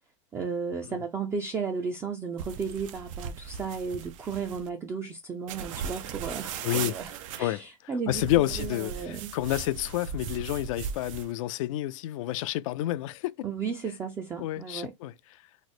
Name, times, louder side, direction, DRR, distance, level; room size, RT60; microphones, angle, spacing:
voice 1, 0.3-8.2 8.6-9.3 13.4-14.9, right 5 dB, 15° right, 0.4 m, -34 dB
sound 1, 2.4-4.7 5.5-7.4 8.1-11.3, right 7 dB, 70° right, 0.5 m, -38 dB
voice 2, 6.6-7.0 7.4-7.6 8.1-13.3 14.4-15.1, left 15 dB, 70° left, 0.4 m, -29 dB
3.1 x 2.0 x 4.1 m
supercardioid pair, 145°, 17 cm